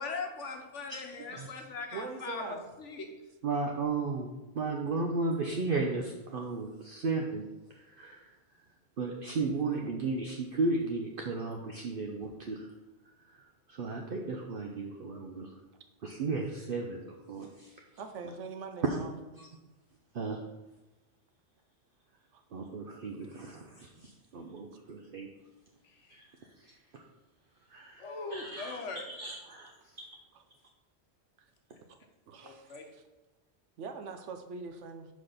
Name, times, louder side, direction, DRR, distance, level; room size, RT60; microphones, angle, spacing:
voice 1, 0.0-3.1 25.8-26.2 28.0-29.0 32.4-32.8, left 4 dB, 90° left, 4 dB, 1.4 m, -40 dB
voice 2, 1.9-2.7 18.0-19.1 22.3-22.4 31.9-32.0 32.3-32.7 33.8-35.1, right 5 dB, 85° right, 7 dB, 1.1 m, -42 dB
voice 3, 3.4-4.3 4.5-7.4 7.7-8.3 9.0-12.7 13.3-15.5 16.0-17.8 18.8-19.0 19.3-19.5 20.1-20.4 22.5-25.3 26.1-26.2 26.6-27.0 27.7-30.1, right 3 dB, 55° right, 1 dB, 0.8 m, -35 dB
6.1 x 5.1 x 5.7 m, 1.1 s
omnidirectional pair, 1.2 m